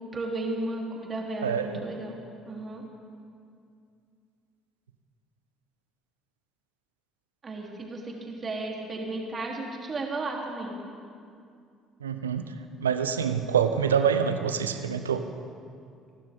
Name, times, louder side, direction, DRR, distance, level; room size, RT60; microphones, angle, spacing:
voice 1, 0.0-2.8 7.4-10.7, right 2 dB, 35° right, -1 dB, 3.1 m, -34 dB
voice 2, 1.4-1.8 12.0-12.5 12.8-15.2, right 7 dB, 90° right, 9 dB, 0.7 m, -26 dB
25.5 x 12.0 x 3.6 m, 2.3 s
hypercardioid pair, 55°, 0 cm